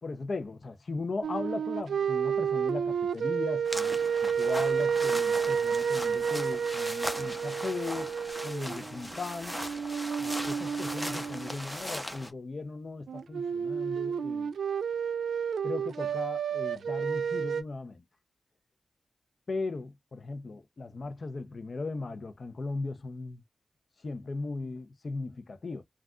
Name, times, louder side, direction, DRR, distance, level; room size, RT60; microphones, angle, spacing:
voice 1, 0.0-8.1 8.4-9.6 10.2-14.5 15.6-18.0 19.5-23.4 24.0-25.8, left 3 dB, 55° left, 0.6 m, -37 dB
sound 1, 1.2-9.1 9.5-11.6 13.1-17.6, right 7 dB, 85° right, 0.4 m, -30 dB
sound 2, 3.7-12.3, equal, 5° left, 0.8 m, -39 dB
3.5 x 2.4 x 2.4 m
cardioid pair, 60°, 0 cm